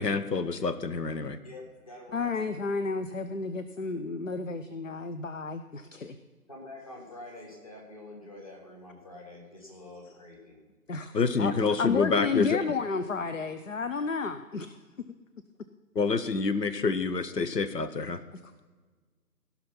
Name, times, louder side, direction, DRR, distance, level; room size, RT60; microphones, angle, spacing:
voice 1, 0.0-1.4 11.1-12.6 15.9-18.2, left 4 dB, 85° left, 11 dB, 0.9 m, -27 dB
voice 2, 1.4-2.5 6.5-10.6, left 2 dB, 20° left, -1 dB, 1.4 m, -46 dB
voice 3, 2.1-6.2 10.9-11.1 11.4-14.7, left 4 dB, 55° left, 9 dB, 0.5 m, -31 dB
15.5 x 5.9 x 5.7 m, 1.4 s
figure-of-eight pair, 160°, 48 cm